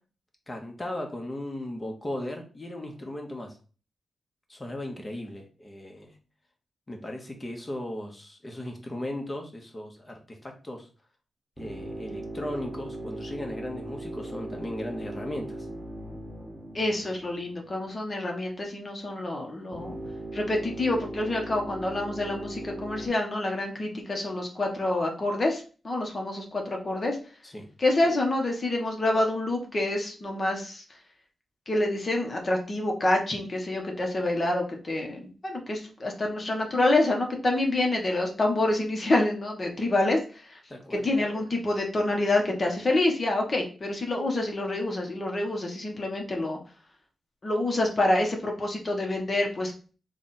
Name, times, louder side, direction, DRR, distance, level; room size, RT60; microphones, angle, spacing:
voice 1, 0.5-3.6 4.5-6.2 6.9-10.9 11.6-15.7 27.4-27.7 40.7-41.1, left 1 dB, 30° left, 2 dB, 1.2 m, -37 dB
sound 1, 11.6-17.9 19.7-23.1, right 1 dB, 10° right, 1.4 m, -39 dB
voice 2, 16.7-20.0 20.3-27.2 27.8-30.8 31.7-40.2 40.5-40.6 40.9-46.6 47.4-49.7, left 2 dB, 45° left, 1 dB, 1.1 m, -27 dB
3.5 x 2.5 x 4.2 m, 0.37 s
cardioid pair, 55°, 0 cm